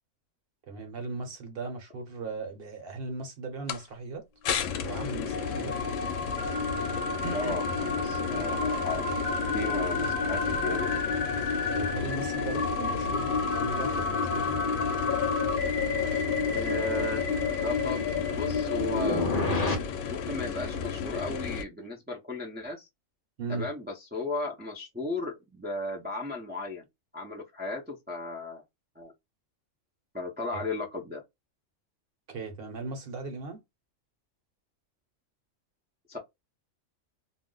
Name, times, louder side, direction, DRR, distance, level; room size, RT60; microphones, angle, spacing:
voice 1, 0.7-4.3 4.8-5.8 7.2-7.6 11.7-14.6 21.8-21.9 23.4-23.7 30.5-30.6 32.3-33.6, right 3 dB, 50° right, 1.0 m, -37 dB
sound 1, 3.7-3.8 4.4-21.6, left 6 dB, 75° left, 0.9 m, -34 dB
sound 2, 4.7-19.7, left 4 dB, 50° left, 0.8 m, -30 dB
voice 2, 7.3-9.2 9.5-10.9 16.5-17.3 17.6-19.3 20.1-22.9 23.5-26.9 27.1-28.6 29.0-29.1 30.1-31.2 36.1-36.2, left 2 dB, 15° right, 0.3 m, -35 dB
2.4 x 2.0 x 3.7 m
omnidirectional pair, 1.3 m